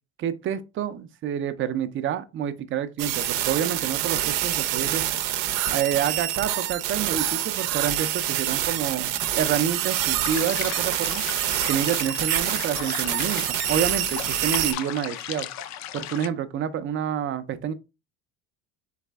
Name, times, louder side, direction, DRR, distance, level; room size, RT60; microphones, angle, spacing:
voice 1, 0.2-5.0 5.5-9.1 9.4-11.2 11.7-15.5 15.9-17.7, right 9 dB, 35° right, 0.5 m, -28 dB
sound 1, 3.0-14.7, right 12 dB, 80° right, 0.7 m, -26 dB
sound 2, 10.2-16.3, left 11 dB, 50° left, 0.5 m, -35 dB
4.0 x 3.2 x 3.4 m
supercardioid pair, 110°, 36 cm